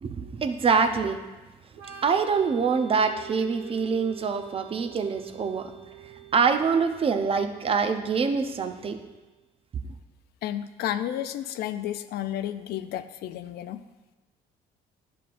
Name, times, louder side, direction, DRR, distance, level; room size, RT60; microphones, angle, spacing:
voice 1, 0.0-1.2 2.0-5.7 6.3-9.0, right 5 dB, 35° right, 7 dB, 0.6 m, -25 dB
Organ, 1.7-9.2, right 12 dB, 90° right, 1.2 m, -46 dB
voice 2, 10.4-13.8, left 11 dB, 70° left, 11 dB, 0.4 m, -32 dB
11.0 x 5.7 x 2.5 m, 1.2 s
cardioid pair, 110°, 17 cm